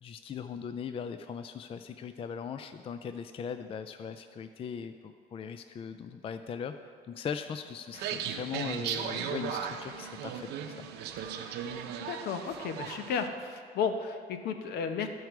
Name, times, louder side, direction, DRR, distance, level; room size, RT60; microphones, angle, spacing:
voice 1, 0.0-10.9, left 7 dB, 35° left, 9 dB, 0.4 m, -39 dB
sound 1, 7.9-13.3, right 8 dB, 80° right, 0.7 m, -37 dB
voice 2, 12.1-15.1, left 6 dB, 75° left, 7 dB, 0.8 m, -33 dB
14.0 x 4.7 x 4.6 m, 2.2 s
cardioid pair, 110°, 17 cm